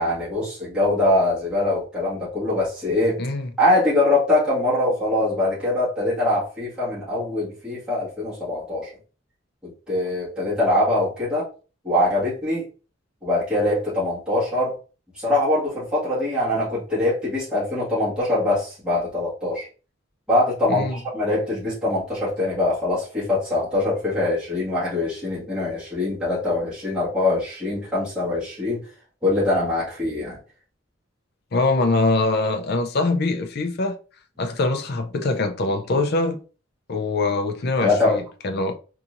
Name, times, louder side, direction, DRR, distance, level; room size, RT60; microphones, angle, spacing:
voice 1, 0.0-3.2 3.6-8.9 9.6-11.4 11.8-12.6 13.2-14.8 15.1-19.7 20.3-28.8 29.2-30.4 37.8-38.2, left 2 dB, 5° right, 1.7 m, -23 dB
voice 2, 3.2-3.5 20.7-21.0 31.5-34.0 34.4-36.4 36.9-38.8, left 2 dB, 50° left, 0.5 m, -23 dB
4.1 x 2.8 x 2.5 m
head